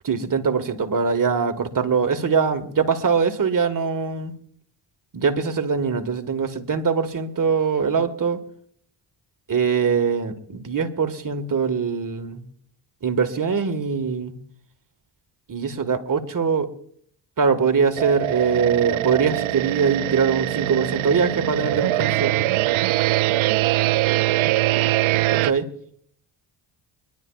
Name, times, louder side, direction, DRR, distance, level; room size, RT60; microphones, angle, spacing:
voice 1, 0.0-4.3 5.1-8.4 9.5-12.4 13.0-14.4 15.5-16.7 17.4-22.4 25.3-25.7, right 5 dB, 40° right, 7 dB, 1.8 m, -22 dB
sound 1, 18.0-25.5, right 17 dB, 70° right, 0.6 m, -22 dB
24.5 x 11.5 x 2.4 m, 0.62 s
supercardioid pair, 60°, 50 cm